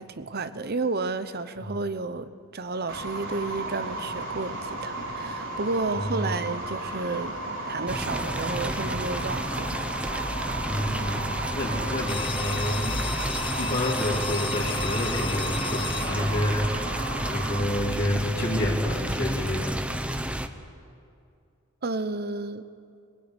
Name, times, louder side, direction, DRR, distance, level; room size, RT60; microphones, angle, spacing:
voice 1, 0.0-7.4 7.7-10.2 10.6-10.7 21.8-22.7, right 3 dB, 50° right, 12 dB, 1.0 m, -32 dB
sound 1, 2.9-17.6, right 2 dB, 65° right, 3.6 m, -34 dB
voice 2, 5.9-6.4 10.6-11.3 11.5-13.0 13.6-16.7 17.3-19.8, left 1 dB, 40° left, -8 dB, 3.8 m, -28 dB
sound 2, 7.9-20.5, right 1 dB, 5° right, 0.9 m, -31 dB
sound 3, 12.1-17.5, left 8 dB, 25° left, 0.5 m, -36 dB
23.0 x 17.0 x 9.9 m, 2.4 s
head